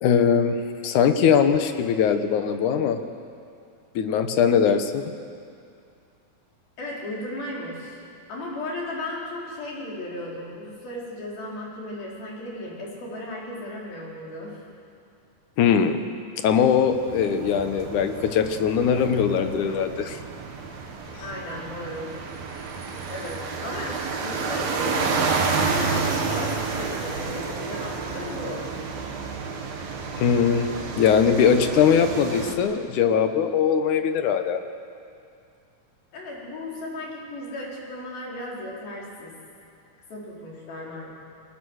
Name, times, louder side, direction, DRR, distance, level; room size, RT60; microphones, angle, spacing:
voice 1, 0.0-3.0 4.0-5.0 15.6-16.0 16.4-20.2 30.2-30.7 31.0-34.6, left 7 dB, 65° left, 8 dB, 2.3 m, -21 dB
voice 2, 6.8-8.0 8.3-14.6 21.2-22.1 23.1-28.6 31.2-31.4 36.1-39.3 40.1-41.1, left 1 dB, 85° left, -4 dB, 6.5 m, -35 dB
sound 1, 16.6-32.6, right 4 dB, 80° right, 3.9 m, -30 dB
30.0 x 21.0 x 6.5 m, 2.4 s
omnidirectional pair, 4.1 m